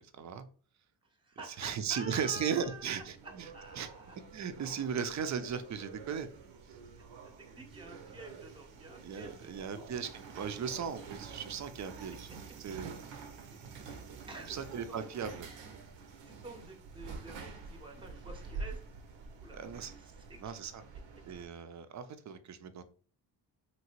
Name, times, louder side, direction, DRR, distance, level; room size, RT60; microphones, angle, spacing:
voice 1, 0.1-0.5 1.5-3.5 3.8-3.9 4.3-6.3 9.0-10.1 10.4-12.3 12.6-13.0 13.7-13.9 14.5-15.5 19.5-19.9 20.4-20.8 21.3-22.8, right 7 dB, 40° right, 11 dB, 0.5 m, -37 dB
voice 2, 1.0-4.2 6.9-9.8 12.3-12.4 13.0-15.5 16.2-18.8 19.4-20.5 21.1-21.2, right 2 dB, 10° right, 3 dB, 0.8 m, -50 dB
sound 1, 2.6-21.5, right 4 dB, 75° right, 0.7 m, -48 dB
2.9 x 2.8 x 2.9 m, 0.42 s
supercardioid pair, 60°, 45 cm